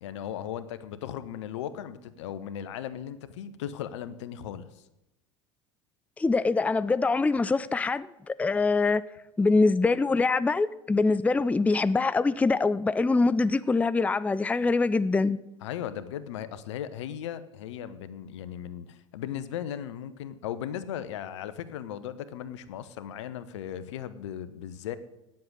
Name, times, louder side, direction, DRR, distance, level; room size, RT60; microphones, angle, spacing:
voice 1, 0.0-4.8 15.6-25.0, left 10 dB, 75° left, 0.9 m, -37 dB
voice 2, 6.2-9.0 9.4-15.4, left 3 dB, 10° left, 0.4 m, -24 dB
9.5 x 7.6 x 8.8 m
hypercardioid pair, 80°, 15 cm